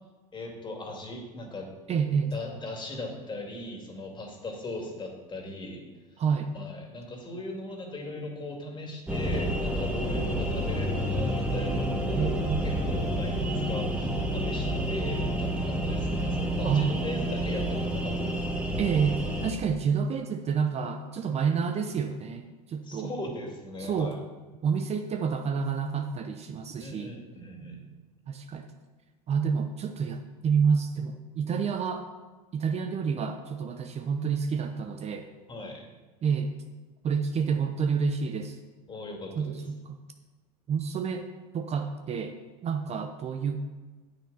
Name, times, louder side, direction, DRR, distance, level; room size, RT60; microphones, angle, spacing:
voice 1, 0.3-1.7 2.3-5.8 6.5-18.4 22.8-24.2 26.8-27.8 35.5-35.9 38.9-39.6, left 2 dB, 25° left, 1 dB, 2.4 m, -39 dB
voice 2, 1.9-2.3 6.2-6.6 12.1-12.8 16.6-16.9 18.8-23.1 23.8-24.2 24.6-27.1 28.3-28.7 29.3-32.1 32.5-35.3 36.2-36.5 37.0-38.6 39.4-40.0 40.7-41.3 41.5-42.4 42.6-43.6, right 6 dB, 35° right, 6 dB, 0.8 m, -29 dB
sound 1, 9.1-19.5, right 1 dB, 5° right, 1.7 m, -29 dB
9.6 x 8.5 x 4.1 m, 1.3 s
hypercardioid pair, 85°, 19 cm